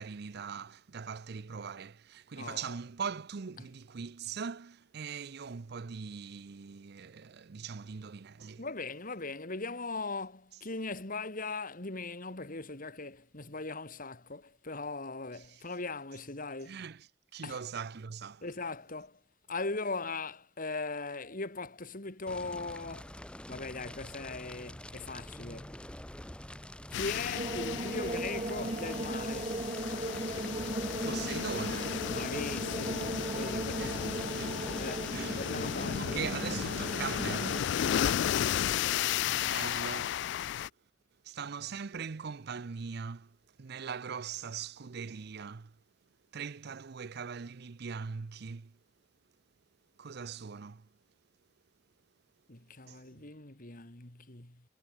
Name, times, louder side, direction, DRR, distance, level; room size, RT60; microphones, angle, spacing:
voice 1, 0.0-8.7 16.7-17.1 17.3-18.4 31.0-32.0 33.8-34.0 34.4-34.6 35.1-35.5 36.0-37.6 39.2-40.2 41.3-43.3 43.6-45.7 46.3-48.7 50.0-50.8 52.9-53.2, right 6 dB, 60° right, 0.6 m, -41 dB
voice 2, 2.4-2.8 3.6-3.7 8.6-16.9 17.4-17.6 18.4-19.2 19.5-25.8 26.9-29.6 32.1-34.5 34.8-36.2 37.8-38.3 52.5-54.6, left 3 dB, 45° left, 3.0 m, -40 dB
Fire, 22.3-38.4, left 1 dB, 5° left, 1.0 m, -47 dB
sound 1, 26.9-40.7, left 10 dB, 65° left, 0.3 m, -34 dB
sound 2, 27.3-37.6, right 2 dB, 30° right, 1.3 m, -37 dB
head